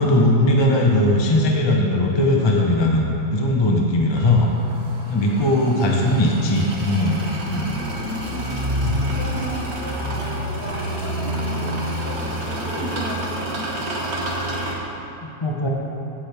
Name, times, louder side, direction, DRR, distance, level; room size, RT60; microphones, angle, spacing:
voice 1, 0.0-3.0 3.3-4.5 5.1-7.7 8.8-9.0 15.2-15.7, left 1 dB, 25° left, -1 dB, 0.6 m, -19 dB
sound 1, 4.2-14.7, right 1 dB, 45° right, 1.4 m, -28 dB
voice 2, 5.3-6.1 7.5-14.2, equal, 60° left, -3 dB, 1.8 m, -35 dB
16.0 x 6.3 x 3.4 m, 2.9 s
omnidirectional pair, 1.8 m